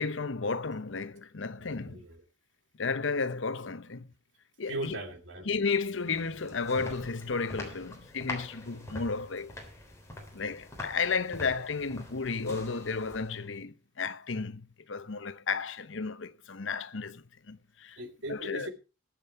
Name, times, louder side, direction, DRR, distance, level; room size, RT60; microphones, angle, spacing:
voice 1, 0.0-2.0 2.8-4.1 4.6-5.0 5.5-9.5 10.3-18.0 18.3-18.7, left 4 dB, 80° left, 0.9 m, -33 dB
voice 2, 1.6-2.2 4.7-5.5 10.2-10.3 18.0-18.7, right 2 dB, 75° right, 2.9 m, -39 dB
sound 1, 5.7-13.6, left 1 dB, 15° left, 3.4 m, -44 dB
21.0 x 7.5 x 4.6 m
head